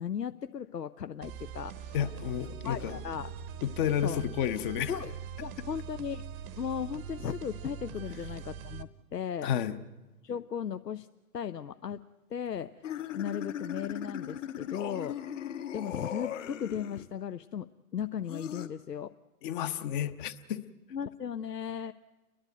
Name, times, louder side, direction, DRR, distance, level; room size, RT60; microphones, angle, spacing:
voice 1, 0.0-2.0 2.6-3.3 4.0-4.2 4.9-5.1 5.4-6.2 6.6-9.5 10.2-11.1 11.3-12.0 12.3-12.7 13.1-15.2 15.7-19.1 20.9-21.9, left 8 dB, 90° left, 12 dB, 0.6 m, -36 dB
sound 1, 1.2-8.8, right 8 dB, 25° right, 0.8 m, -42 dB
voice 2, 1.9-3.0 3.6-4.9 9.4-9.8 19.4-20.6, left 10 dB, 35° left, 11 dB, 0.9 m, -31 dB
sound 2, 12.8-17.1 18.2-18.7, left 10 dB, 50° left, 1.4 m, -38 dB
29.5 x 11.5 x 9.2 m, 1.1 s
figure-of-eight pair, 110°, 47 cm